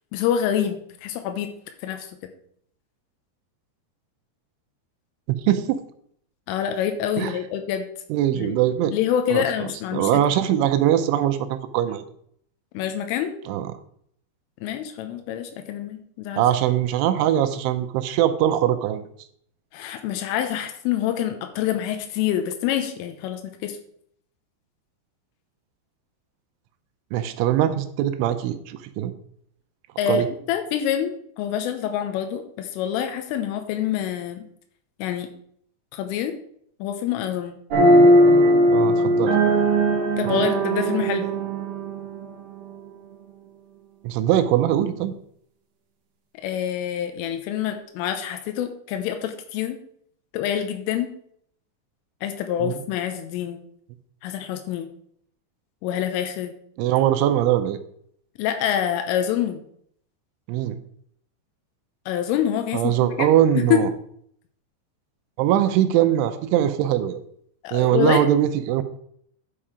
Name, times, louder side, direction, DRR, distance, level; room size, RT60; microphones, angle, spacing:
voice 1, 0.1-1.5 1.8-2.1 6.5-7.9 8.3-8.6 8.9-10.1 12.7-13.3 14.6-16.4 19.7-23.8 30.0-34.5 35.0-35.3 35.9-36.4 36.8-37.6 40.2-41.3 46.4-49.8 50.3-51.1 52.2-53.6 54.2-54.9 55.8-56.5 58.4-59.6 62.1-63.3 63.6-63.8 67.6-68.2, left 10 dB, 90° left, 6 dB, 3.4 m, -26 dB
voice 2, 5.3-5.8 7.2-7.4 8.1-8.9 9.3-12.0 13.5-13.7 16.4-19.0 27.1-29.1 30.1-30.3 38.7-39.3 44.0-45.2 52.6-52.7 56.8-57.8 60.5-60.8 62.7-63.9 65.4-67.2 67.7-68.8, right 11 dB, 80° right, 9 dB, 3.0 m, -21 dB
sound 1, 37.7-43.2, right 1 dB, 65° right, 1.7 m, -19 dB
11.0 x 5.7 x 4.9 m, 0.66 s
omnidirectional pair, 5.7 m